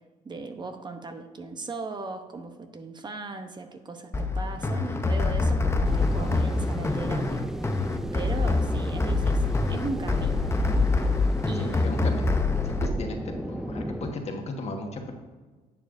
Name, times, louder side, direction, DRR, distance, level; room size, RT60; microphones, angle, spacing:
voice 1, 0.2-7.5 8.1-10.5 11.4-12.0, right 3 dB, 30° right, 7 dB, 0.8 m, -37 dB
sound 1, 4.1-12.9, left 3 dB, 15° left, 0.7 m, -25 dB
sound 2, 5.8-14.1, right 1 dB, 5° right, 0.3 m, -34 dB
voice 2, 11.5-12.3 12.6-15.1, left 2 dB, 45° left, 3 dB, 1.5 m, -36 dB
10.5 x 7.2 x 2.6 m, 1.3 s
cardioid pair, 95°, 15 cm